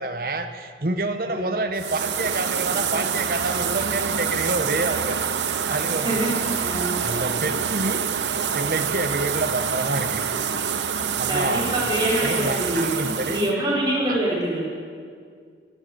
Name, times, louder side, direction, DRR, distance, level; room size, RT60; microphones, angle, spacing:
voice 1, 0.0-5.2 5.7-6.2 6.7-8.1 8.5-10.2 10.7-10.8 11.2-11.7 12.2-13.4 14.1-14.2, right 2 dB, 55° right, 7 dB, 0.9 m, -28 dB
sound 1, 1.8-13.5, right 7 dB, 90° right, 0.8 m, -26 dB
voice 2, 6.6-7.5 11.3-14.6, right 1 dB, 25° right, -6 dB, 4.9 m, -25 dB
23.5 x 7.8 x 7.8 m, 2.1 s
head